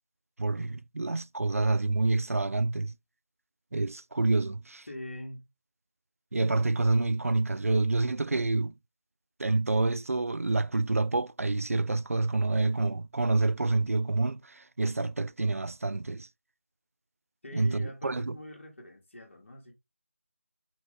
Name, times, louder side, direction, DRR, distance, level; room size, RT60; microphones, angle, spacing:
voice 1, 0.4-2.9 3.7-4.9 6.3-8.7 9.4-16.3 17.5-18.4, right 3 dB, 80° right, 0.4 m, -28 dB
voice 2, 4.9-5.5 17.4-19.7, left 1 dB, 55° left, 2.0 m, -43 dB
5.7 x 2.5 x 3.6 m
figure-of-eight pair, 165°, 8 cm